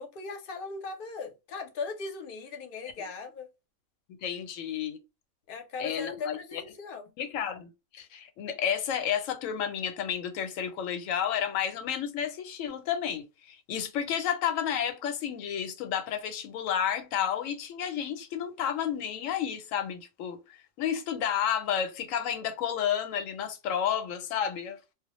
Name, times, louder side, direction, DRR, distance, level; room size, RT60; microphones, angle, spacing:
voice 1, 0.0-3.5 5.5-7.1, left 4 dB, 55° left, 0.6 m, -38 dB
voice 2, 4.2-5.0 5.8-6.6 7.2-24.8, left 9 dB, 90° left, 1.0 m, -31 dB
2.2 x 2.0 x 2.9 m
omnidirectional pair, 1.3 m